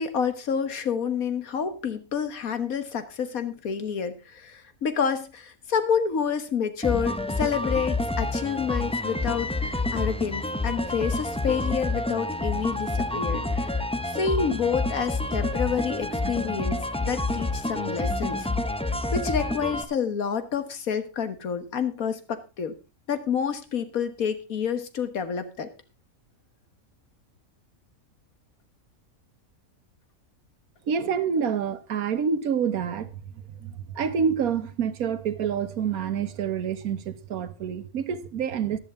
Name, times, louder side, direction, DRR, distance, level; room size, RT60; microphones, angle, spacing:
voice 1, 0.0-18.5 19.1-22.7 23.1-25.7, left 7 dB, 75° left, 1.8 m, -29 dB
sound 1, 6.8-19.8, left 2 dB, 10° left, 0.3 m, -28 dB
voice 2, 30.9-33.2 33.5-38.8, right 7 dB, 90° right, 1.5 m, -27 dB
14.5 x 10.5 x 3.6 m
omnidirectional pair, 1.5 m